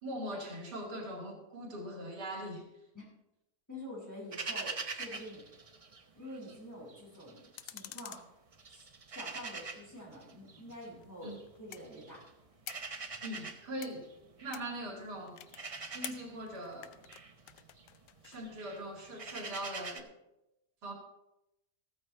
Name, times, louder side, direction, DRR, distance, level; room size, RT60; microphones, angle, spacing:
voice 1, 0.0-2.7 11.2-11.3 13.2-14.1 14.4-15.4 15.9-17.0 18.2-20.1 20.8-20.9, right 1 dB, 85° right, 1 dB, 2.8 m, -41 dB
voice 2, 3.7-5.4 6.1-8.3 8.7-11.3 11.6-12.2, left 1 dB, 10° left, -5 dB, 5.9 m, -47 dB
sound 1, 4.3-6.6 6.9-8.2 8.5-20.0, right 4 dB, 35° right, 0.5 m, -44 dB
sound 2, 7.6-9.1 10.6-18.4, left 12 dB, 90° left, 1.2 m, -51 dB
15.0 x 14.0 x 3.3 m, 0.90 s
omnidirectional pair, 1.7 m